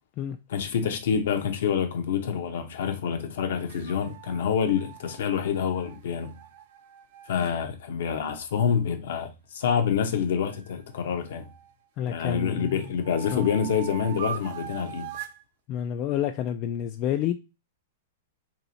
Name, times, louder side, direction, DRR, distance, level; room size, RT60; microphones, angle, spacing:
voice 1, 0.5-6.4 7.3-11.5 12.1-15.2, left 7 dB, 65° left, 0.7 m, -27 dB
sound 1, 3.7-7.5 10.5-11.7 12.2-15.4, right 10 dB, 55° right, 0.4 m, -42 dB
voice 2, 12.0-12.9 13.3-13.5 15.7-17.3, left 10 dB, 40° left, 0.3 m, -29 dB
2.9 x 2.7 x 3.9 m
hypercardioid pair, 115°, 0 cm